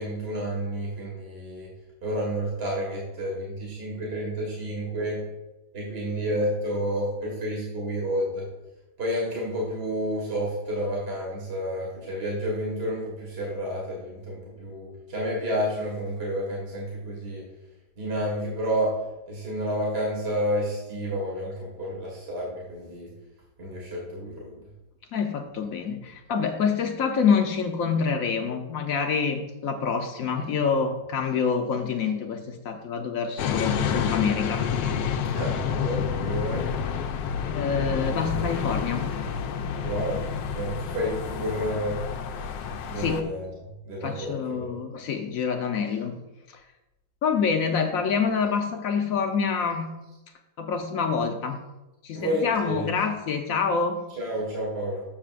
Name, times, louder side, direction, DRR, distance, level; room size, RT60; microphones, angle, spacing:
voice 1, 0.0-1.7 2.0-5.2 5.7-8.5 9.0-17.4 18.0-19.0 19.3-23.1 23.6-24.6 35.3-36.6 39.8-40.2 40.5-42.0 42.9-43.5 43.9-44.7 52.1-52.9 54.2-55.0, equal, 35° right, -4 dB, 1.8 m, -30 dB
voice 2, 25.1-34.6 37.5-39.0 43.0-43.3 44.0-46.2 46.5-46.6 47.2-49.9 50.6-51.6 52.0-54.0, left 6 dB, 65° left, 4 dB, 0.9 m, -26 dB
sound 1, 33.4-43.2, left 7 dB, 80° left, 1.3 m, -29 dB
8.6 x 6.8 x 2.5 m, 0.99 s
omnidirectional pair, 2.0 m